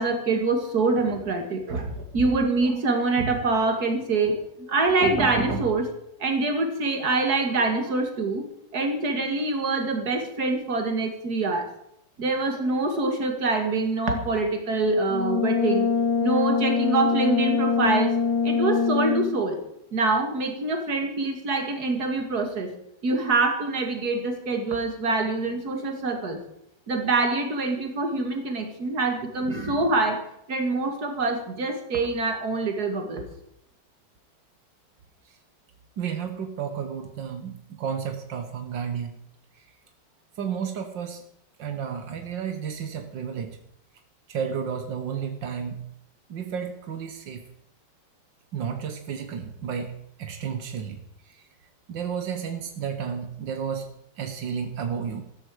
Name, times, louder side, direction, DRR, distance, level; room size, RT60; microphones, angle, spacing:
voice 1, 0.0-4.4 4.7-5.9 6.2-8.4 8.7-11.7 12.2-15.9 16.2-18.1 18.4-19.6 19.9-22.7 23.0-26.4 26.9-30.2 30.5-33.3, right 3 dB, 60° right, 4 dB, 2.8 m, -25 dB
Brass instrument, 15.1-19.5, left 5 dB, 75° left, 1.7 m, -24 dB
voice 2, 36.0-39.2 39.6-39.7 40.4-41.2 41.6-43.6 44.3-45.8 46.3-47.4 48.5-51.0 51.3-51.5 51.9-53.9 54.2-55.2, right 7 dB, 85° right, 6 dB, 1.9 m, -32 dB
14.0 x 13.5 x 5.0 m, 0.77 s
omnidirectional pair, 1.9 m